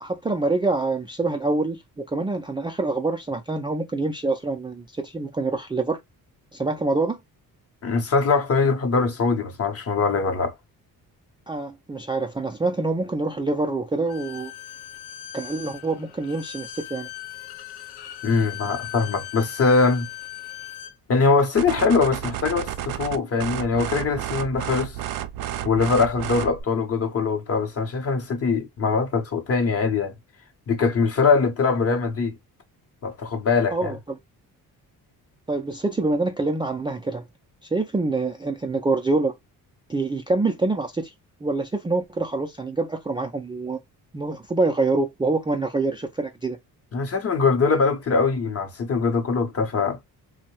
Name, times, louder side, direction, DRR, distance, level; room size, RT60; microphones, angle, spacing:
voice 1, 0.0-6.0 6.5-7.2 11.5-14.5 15.3-17.1 33.7-34.2 35.5-37.2 37.7-39.3 39.9-41.1 41.4-43.8 44.1-46.6, right 3 dB, 15° right, 0.3 m, -26 dB
voice 2, 7.8-10.5 18.2-20.1 21.1-25.0 25.6-30.1 30.7-32.4 33.0-33.9 46.9-50.0, left 4 dB, 40° left, 0.8 m, -22 dB
Bowed string instrument, 14.1-21.0, left 13 dB, 85° left, 0.5 m, -39 dB
sound 1, 21.6-26.6, right 11 dB, 70° right, 0.5 m, -31 dB
2.6 x 2.1 x 2.9 m
cardioid pair, 90°, 37 cm